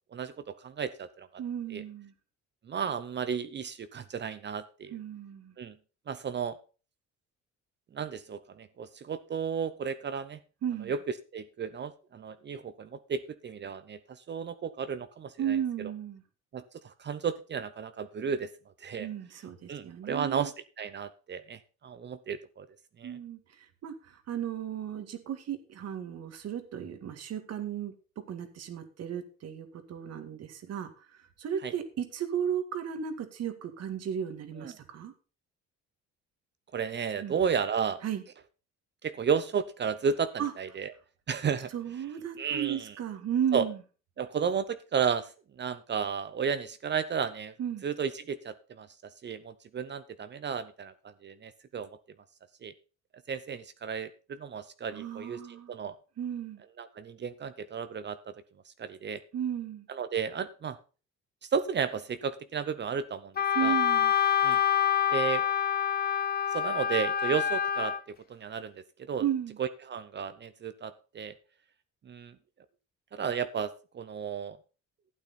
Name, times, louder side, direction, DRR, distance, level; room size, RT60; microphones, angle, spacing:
voice 1, 0.1-1.3 1.7-1.8 2.7-5.0 5.6-5.7 6.1-6.6 7.9-10.4 10.8-15.9 16.5-18.5 18.8-19.1 19.7-22.7 23.0-23.2 31.6-31.7 34.6-34.7 36.7-38.0 39.0-40.9 41.3-41.7 42.4-42.9 43.5-43.7 44.2-45.3 45.6-47.5 47.8-51.9 52.6-52.7 53.3-56.0 56.8-58.3 58.7-59.2 59.9-60.8 61.5-63.3 63.6-63.7 64.4-64.6 65.1-65.4 66.5-69.2 69.6-71.3 72.0-72.4 73.1-74.6, right 6 dB, 35° right, 13 dB, 0.8 m, -33 dB
voice 2, 1.4-2.1 4.9-5.5 10.6-10.9 15.4-16.2 19.0-20.5 23.0-27.9 28.3-30.9 31.2-35.1 37.2-37.3 38.0-38.2 40.4-40.5 41.7-43.8 47.6-47.8 54.9-55.7 56.2-56.6 59.3-59.9 63.5-64.1 69.2-69.6, right 9 dB, 60° right, 9 dB, 2.0 m, -34 dB
Wind instrument woodwind instrument, 63.4-68.0, left 9 dB, 30° left, 0.8 m, -26 dB
12.0 x 8.9 x 4.2 m, 0.35 s
cardioid pair, 115°, 30 cm